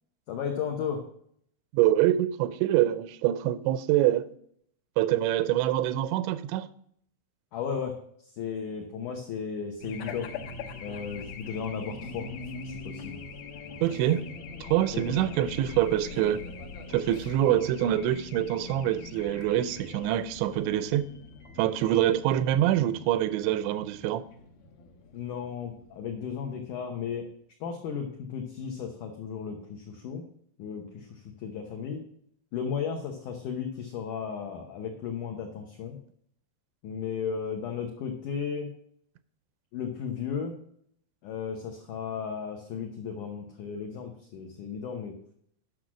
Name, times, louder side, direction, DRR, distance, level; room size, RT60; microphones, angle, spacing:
voice 1, 0.3-1.0 7.5-8.0 8.4-10.3 10.8-12.3 12.6-13.2 14.9-15.0 25.1-27.3 27.6-30.3 30.6-32.0 32.5-36.0 36.8-38.7 39.7-40.6 41.2-45.2, left 6 dB, 90° left, 1.7 m, -35 dB
voice 2, 1.7-4.2 5.0-6.7 13.8-14.2 14.6-16.4 16.9-21.0 21.6-24.2, right 12 dB, 90° right, 2.9 m, -25 dB
Race car auto racing / Alarm, 9.8-26.8, left 4 dB, 70° left, 2.4 m, -42 dB
10.5 x 6.2 x 6.1 m
omnidirectional pair, 5.0 m